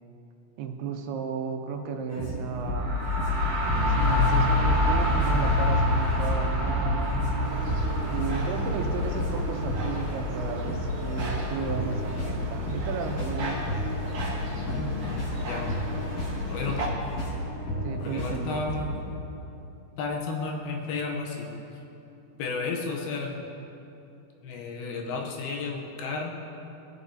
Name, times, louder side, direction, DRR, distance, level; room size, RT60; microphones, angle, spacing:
voice 1, 0.6-3.0 3.7-7.2 8.0-13.6 17.8-18.7, right 6 dB, 80° right, 4 dB, 2.7 m, -34 dB
sound 1, 2.1-19.0, equal, 35° left, 2.3 m, -33 dB
sound 2, 2.6-14.2, left 1 dB, 30° right, 1.7 m, -27 dB
sound 3, 7.4-16.9, left 2 dB, 55° right, 1.8 m, -35 dB
voice 2, 14.5-15.1 15.4-15.7 16.5-16.9 18.0-18.9 20.0-21.5 22.4-23.5 24.4-26.3, left 4 dB, 80° left, 1 dB, 2.7 m, -33 dB
19.0 x 7.2 x 2.8 m, 2.9 s
omnidirectional pair, 4.5 m